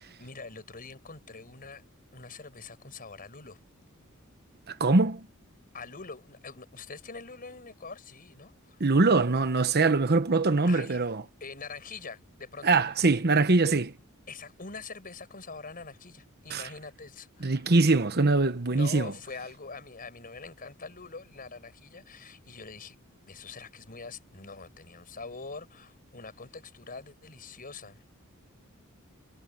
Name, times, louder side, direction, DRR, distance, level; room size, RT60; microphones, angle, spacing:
voice 1, 0.2-1.8 2.1-3.6 5.7-8.8 10.6-11.1 11.4-13.3 14.3-17.6 18.7-28.0, left 4 dB, 45° left, 5.3 m, -44 dB
voice 2, 4.7-5.2 8.8-11.2 12.6-13.9 16.5-16.6 17.4-19.1, right 3 dB, 50° right, 1.1 m, -23 dB
head